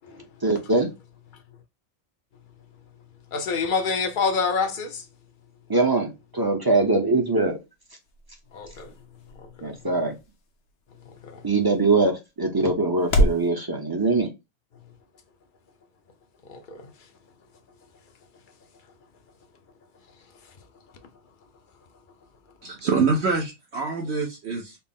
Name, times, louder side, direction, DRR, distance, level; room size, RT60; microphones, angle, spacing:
voice 1, 0.4-0.9 5.7-7.5 9.6-10.1 11.4-14.3, right 3 dB, 25° right, 0.6 m, -22 dB
voice 2, 3.3-5.0 8.5-8.9 9.6-9.7 11.3-11.4 16.5-16.8, left 5 dB, 50° left, 0.7 m, -26 dB
sound 1, 7.2-13.5, equal, 70° left, 1.0 m, -31 dB
voice 3, 22.6-24.8, right 4 dB, 65° right, 1.0 m, -25 dB
4.3 x 2.0 x 3.5 m
omnidirectional pair, 1.2 m